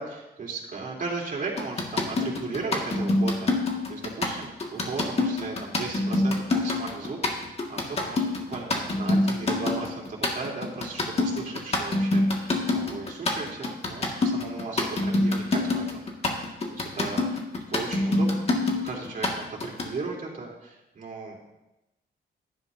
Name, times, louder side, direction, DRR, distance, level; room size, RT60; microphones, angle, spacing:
voice 1, 0.0-16.0 16.4-17.4 17.7-18.4 18.7-21.6, right 3 dB, 50° right, -2 dB, 3.1 m, -36 dB
sound 1, 1.6-19.9, left 2 dB, 35° left, 1.8 m, -25 dB
17.0 x 11.0 x 2.7 m, 0.96 s
wide cardioid pair, 145°, 18 cm